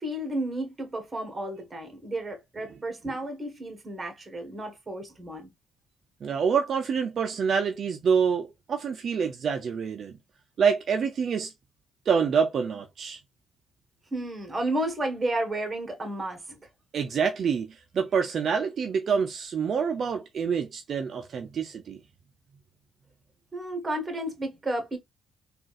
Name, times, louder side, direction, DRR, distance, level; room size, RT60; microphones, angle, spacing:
voice 1, 0.0-5.5 14.1-16.6 23.5-25.0, right 1 dB, 25° right, 1.4 m, -32 dB
voice 2, 6.2-10.1 10.6-11.5 12.1-13.2 16.9-22.0, right 6 dB, 55° right, 0.5 m, -26 dB
3.8 x 2.4 x 2.4 m
cardioid pair, 90°, 0 cm